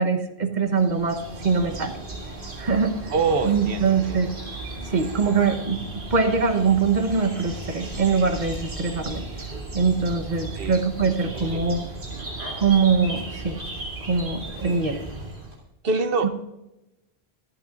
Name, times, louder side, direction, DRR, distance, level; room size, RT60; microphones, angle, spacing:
voice 1, 0.0-1.9 2.6-3.0 3.4-4.3 4.8-9.2 9.7-11.8 12.6-13.6 14.0-15.0 16.2-16.3, right 5 dB, 45° right, 7 dB, 1.2 m, -23 dB
sound 1, 0.7-15.6, right 2 dB, 90° right, 3.5 m, -35 dB
voice 2, 3.1-4.3 10.5-10.8 11.3-11.7 15.8-16.3, right 4 dB, 65° right, 9 dB, 1.0 m, -26 dB
26.0 x 8.8 x 2.5 m, 0.96 s
omnidirectional pair, 1.1 m